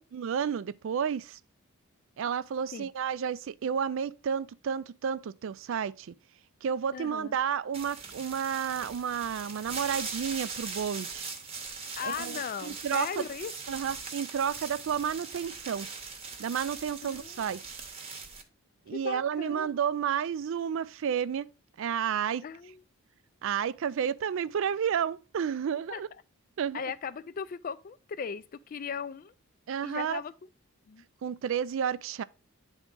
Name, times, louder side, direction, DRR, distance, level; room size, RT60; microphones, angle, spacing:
voice 1, 0.1-1.4 2.2-6.1 6.6-11.3 12.0-13.1 13.7-15.9 16.4-17.8 18.9-21.5 21.8-22.4 23.4-26.1 26.6-26.8 29.7-30.2 31.2-32.2, right 7 dB, 60° right, 0.3 m, -31 dB
voice 2, 6.9-7.4 12.0-13.5 17.0-17.4 18.9-19.8 22.4-22.8 25.9-26.0 26.7-29.3 29.8-30.3 30.9-31.0, left 6 dB, 40° left, 0.3 m, -38 dB
sound 1, 7.7-18.4, right 4 dB, 25° right, 0.9 m, -41 dB
9.3 x 3.6 x 3.7 m
head